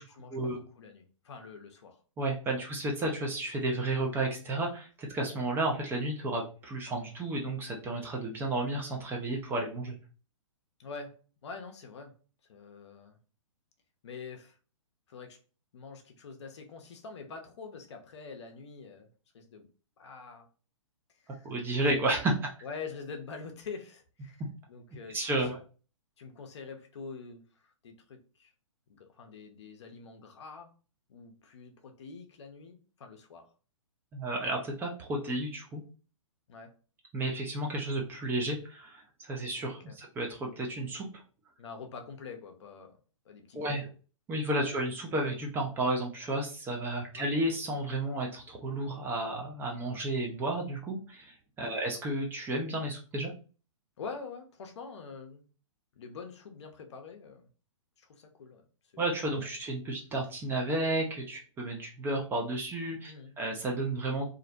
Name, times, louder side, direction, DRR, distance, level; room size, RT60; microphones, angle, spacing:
voice 1, 0.0-2.0 2.6-2.7 10.8-11.2 11.4-12.1 12.5-13.2 14.0-14.6 15.1-15.4 15.7-19.7 20.0-20.5 21.2-21.5 22.6-24.4 24.7-25.5 26.2-28.5 28.9-30.7 31.1-33.5 36.5-36.7 39.9-40.0 41.6-43.0 43.2-43.9 47.1-47.3 51.6-51.8 54.0-55.4 55.9-57.5 58.0-58.7 58.9-59.0 59.4-59.5 63.0-63.4, left 5 dB, 60° left, 0.6 m, -45 dB
voice 2, 2.2-10.0 21.4-22.5 25.1-25.6 34.1-35.8 37.1-41.1 43.5-43.8 44.3-53.3 59.0-64.3, right 1 dB, 15° right, 0.4 m, -32 dB
2.5 x 2.0 x 2.6 m
figure-of-eight pair, 120°, 17 cm